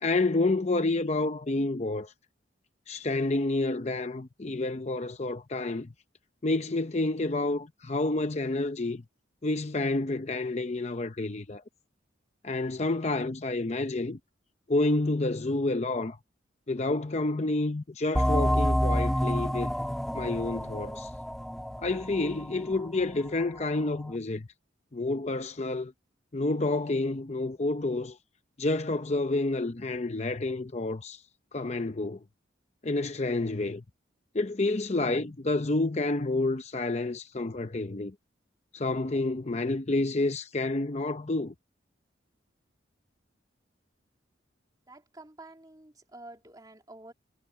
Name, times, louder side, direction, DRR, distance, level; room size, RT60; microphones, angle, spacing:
voice 1, 0.0-2.1 2.9-5.9 6.4-9.0 9.4-11.6 12.4-14.2 14.7-16.2 16.7-19.7 20.1-21.1 21.8-24.5 24.9-25.9 26.3-28.2 28.6-31.2 31.5-32.2 32.8-33.8 34.3-38.1 38.7-41.5, left 2 dB, 35° left, 0.7 m, -29 dB
sound 1, 18.1-23.4, equal, ahead, 0.3 m, -28 dB
voice 2, 44.9-47.1, right 2 dB, 20° right, 2.8 m, -49 dB
head